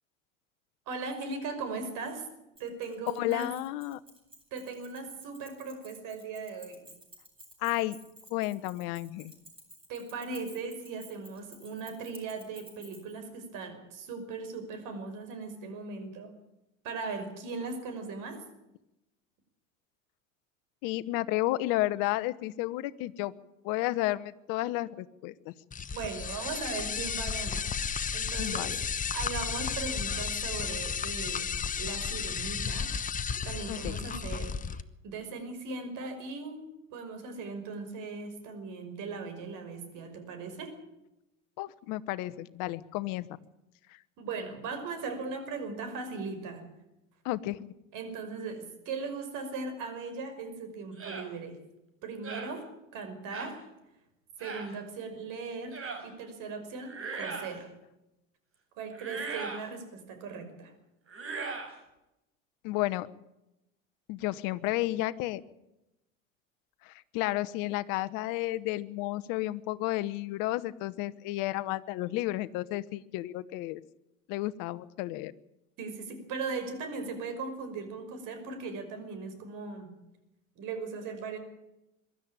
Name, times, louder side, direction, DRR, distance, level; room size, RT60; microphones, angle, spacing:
voice 1, 0.9-2.3 2.6-3.5 4.5-6.9 9.9-16.3 16.8-18.4 25.9-27.7 28.1-28.8 29.1-31.5 31.8-32.9 33.4-36.6 36.9-40.7 44.2-46.7 47.9-51.6 52.0-52.7 52.9-53.6 54.4-57.7 58.8-60.7 75.8-79.9 80.6-81.4, right 4 dB, 55° right, 7 dB, 5.7 m, -38 dB
Keys jangling, 2.6-13.2, right 1 dB, 15° right, 6.8 m, -54 dB
voice 2, 3.2-4.0 7.6-8.0 8.3-9.3 20.8-23.3 23.6-25.5 28.4-28.8 33.7-34.0 41.6-43.3 47.2-47.7 62.6-63.1 64.1-65.4 66.8-73.8 74.3-75.3, left 17 dB, 55° left, 14 dB, 1.2 m, -32 dB
sound 1, 25.7-34.8, left 6 dB, 20° left, 1.0 m, -33 dB
sound 2, 51.0-51.3 52.2-52.5 53.3-53.6 54.4-54.7 55.7-56.0 56.8-57.6 58.9-59.7 61.1-61.7, right 4 dB, 35° right, 6.1 m, -38 dB
23.0 x 12.5 x 8.9 m, 0.92 s
hypercardioid pair, 80°, 39 cm